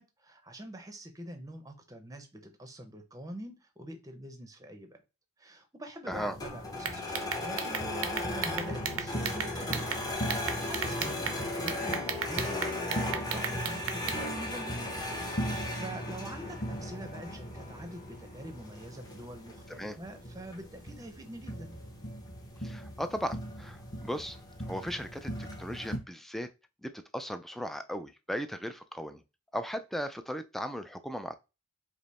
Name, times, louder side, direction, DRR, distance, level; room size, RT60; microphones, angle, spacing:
voice 1, 0.0-5.0 5.4-9.9 10.3-12.6 12.9-14.9 15.3-21.8, right 1 dB, 15° right, 7 dB, 0.7 m, -45 dB
sound 1, 6.1-26.0, left 1 dB, 15° left, 0.9 m, -37 dB
sound 2, 6.8-10.0 10.3-11.4 11.7-14.2, right 8 dB, 75° right, 0.6 m, -34 dB
voice 2, 22.6-24.4 24.7-26.5 26.8-29.2 29.5-31.3, equal, ahead, 8 dB, 0.3 m, -37 dB
5.1 x 2.0 x 4.1 m, 0.27 s
head